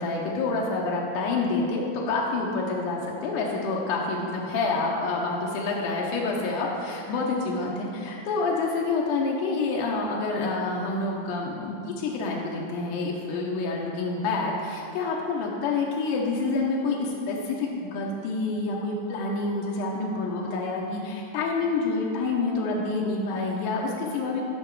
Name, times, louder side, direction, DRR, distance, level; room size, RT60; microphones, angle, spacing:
voice 1, 0.0-24.4, left 3 dB, 90° left, -2 dB, 2.3 m, -28 dB
8.9 x 5.5 x 4.6 m, 2.7 s
omnidirectional pair, 3.6 m